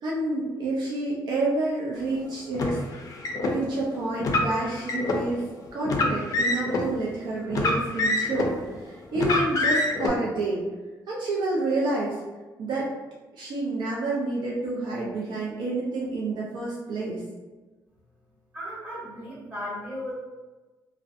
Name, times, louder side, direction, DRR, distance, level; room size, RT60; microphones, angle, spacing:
voice 1, 0.0-2.8 3.4-5.4 5.7-8.5 8.8-10.6 11.1-12.2 12.6-12.9 13.3-17.2, right 2 dB, 65° right, -5 dB, 0.4 m, -29 dB
Car, 2.5-3.5 4.2-5.2 5.8-6.8 7.5-8.6 9.2-10.1, left 2 dB, 45° left, 0.4 m, -25 dB
voice 2, 18.5-20.1, equal, 15° right, -9 dB, 1.3 m, -35 dB
2.5 x 2.0 x 2.5 m, 1.2 s
cardioid pair, 130°, 8 cm